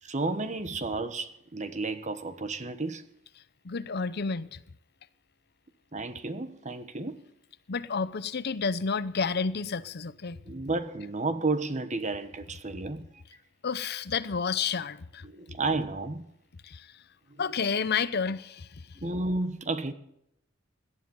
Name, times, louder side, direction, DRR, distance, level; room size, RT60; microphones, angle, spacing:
voice 1, 0.0-3.1 5.9-7.2 10.4-13.2 15.2-16.2 17.3-17.4 19.0-19.9, right 3 dB, 35° right, 1.2 m, -32 dB
voice 2, 3.6-4.6 7.7-10.4 13.6-15.3 16.6-17.0 17.4-18.8, left 5 dB, 55° left, 0.7 m, -30 dB
17.5 x 12.0 x 5.5 m
head